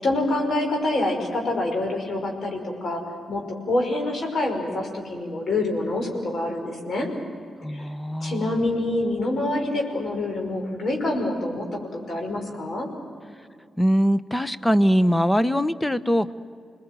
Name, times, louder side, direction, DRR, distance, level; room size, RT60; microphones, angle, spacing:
voice 1, 0.0-3.0 3.3-7.1 7.7-7.9 8.2-12.9, left 2 dB, 55° left, 2 dB, 5.5 m, -26 dB
voice 2, 7.6-8.6 13.8-16.3, equal, 10° left, 16 dB, 1.1 m, -22 dB
27.0 x 20.5 x 9.3 m, 2.3 s
hypercardioid pair, 40°, 0 cm